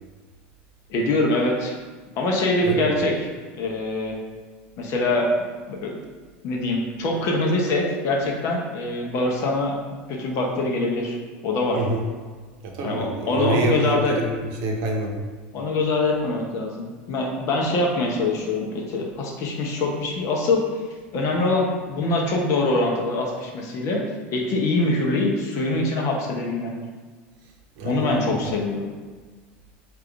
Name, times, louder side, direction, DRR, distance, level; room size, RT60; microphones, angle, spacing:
voice 1, 0.9-1.7 2.2-3.1 3.5-4.2 4.8-5.3 5.7-6.0 6.4-9.8 10.1-11.2 11.4-11.8 12.8-14.2 15.5-20.8 21.1-24.0 24.3-26.7 27.8-28.9, left 2 dB, 50° left, -1 dB, 0.8 m, -24 dB
voice 2, 11.7-12.0 12.6-15.2 27.8-28.5, right 2 dB, 60° right, 0 dB, 0.9 m, -27 dB
3.4 x 2.5 x 4.5 m, 1.4 s
supercardioid pair, 115°, 6 cm